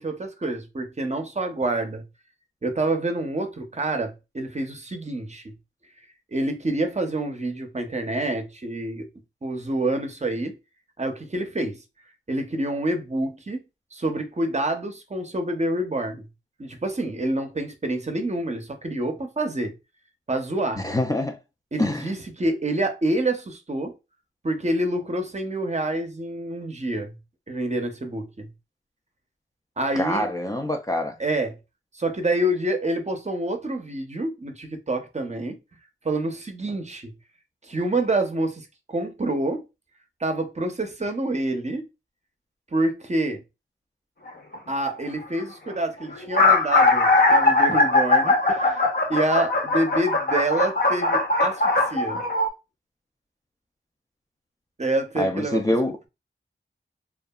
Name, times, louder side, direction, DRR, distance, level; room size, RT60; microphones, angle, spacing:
voice 1, 0.0-2.0 2.6-5.5 6.3-9.1 9.4-10.6 11.0-11.8 12.3-13.6 13.9-16.3 16.6-19.7 20.3-20.8 21.7-24.0 24.4-27.2 27.5-28.5 29.8-30.3 31.2-31.6 31.9-35.6 36.0-37.1 37.6-39.6 40.2-41.8 42.7-43.4 44.7-48.8 49.1-52.2 54.8-55.7, right 1 dB, 35° right, 0.6 m, -27 dB
voice 2, 20.8-21.4 21.8-22.1 29.9-31.2 55.2-55.9, left 1 dB, 15° left, 0.4 m, -25 dB
sound 1, 44.3-44.6 45.4-45.5 45.7-45.8 46.1-52.5, left 2 dB, 45° left, 0.7 m, -20 dB
2.7 x 2.4 x 2.2 m
wide cardioid pair, 70°, 21 cm